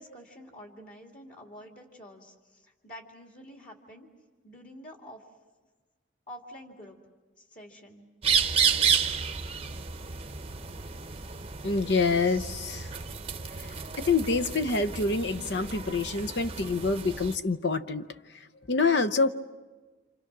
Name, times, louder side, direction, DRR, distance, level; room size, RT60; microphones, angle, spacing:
voice 1, 0.0-4.1 4.4-5.2 6.3-7.0 7.4-8.1, equal, 40° left, 1 dB, 2.5 m, -48 dB
sound 1, 8.2-17.4, right 6 dB, 30° right, 0.8 m, -31 dB
voice 2, 11.6-12.9 13.5-19.3, left 4 dB, 55° left, 10 dB, 0.8 m, -27 dB
29.5 x 28.0 x 6.1 m, 1.3 s
head